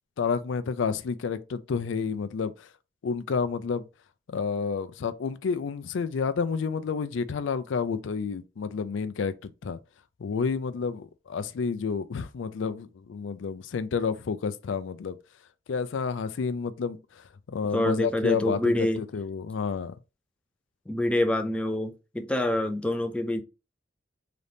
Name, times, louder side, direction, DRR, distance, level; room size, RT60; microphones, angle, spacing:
voice 1, 0.2-2.7 3.0-3.8 4.3-9.8 10.2-15.2 15.7-20.0, left 5 dB, 85° left, 0.4 m, -30 dB
voice 2, 17.7-19.0 20.9-23.4, left 1 dB, 5° left, 0.4 m, -26 dB
3.8 x 3.4 x 2.7 m
head